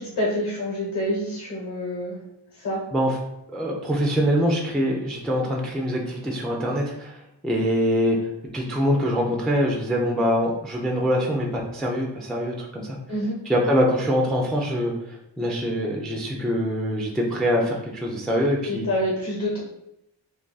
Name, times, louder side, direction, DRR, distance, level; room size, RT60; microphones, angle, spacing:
voice 1, 0.0-2.2 2.5-2.8 13.1-13.4 18.6-19.6, left 1 dB, 50° left, -4 dB, 1.1 m, -27 dB
voice 2, 3.5-7.2 7.4-8.2 8.5-13.0 13.5-18.9, equal, ahead, 0 dB, 0.3 m, -24 dB
2.6 x 2.6 x 3.8 m, 0.83 s
wide cardioid pair, 165°, 47 cm